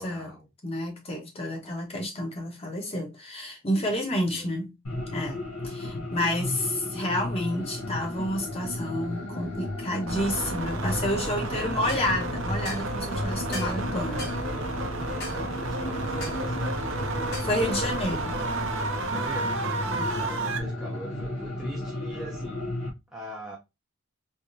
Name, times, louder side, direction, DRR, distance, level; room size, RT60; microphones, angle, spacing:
voice 1, 0.0-0.5 4.3-4.6 11.3-11.8 13.5-14.4 15.2-17.1 19.0-22.7 23.1-23.6, equal, 5° right, 0.6 m, -42 dB
voice 2, 0.6-4.7 5.1-5.4 5.6-14.2 17.4-18.4 19.9-20.1, left 1 dB, 25° left, 1.1 m, -30 dB
sound 1, 4.8-22.9, left 1 dB, 85° left, 1.4 m, -34 dB
sound 2, 10.1-20.6, right 3 dB, 60° right, 0.7 m, -32 dB
sound 3, 11.9-12.1 12.6-12.9 13.5-13.8 14.2-14.4 15.2-15.4 16.2-16.4 17.3-17.5, left 2 dB, 50° left, 1.6 m, -38 dB
3.7 x 3.1 x 2.6 m
head